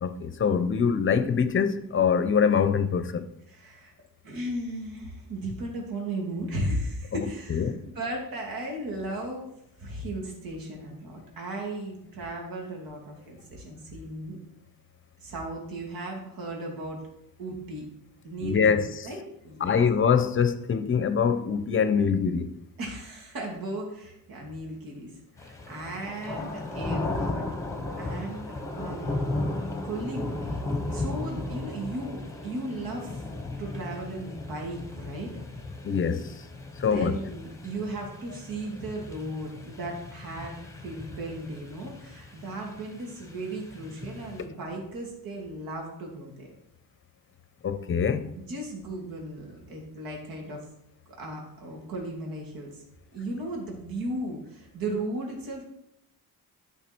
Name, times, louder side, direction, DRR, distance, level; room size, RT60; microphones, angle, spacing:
voice 1, 0.0-3.3 7.1-7.2 7.5-7.8 18.4-19.1 19.6-22.5 35.8-36.3 36.8-37.1 47.6-48.2, left 6 dB, 35° left, 0.7 m, -24 dB
voice 2, 3.5-3.9 4.2-9.5 9.8-14.4 15.2-17.0 17.4-17.9 18.2-19.8 22.8-25.1 25.4-27.5 28.0-28.5 28.7-30.6 30.9-33.2 33.6-35.3 36.9-46.5 48.4-50.7 51.2-52.8 53.1-55.6, right 1 dB, 70° right, 2.7 m, -36 dB
sound 1, 25.4-44.5, left 2 dB, 10° left, 1.1 m, -36 dB
12.5 x 5.8 x 4.5 m
wide cardioid pair, 165°, 36 cm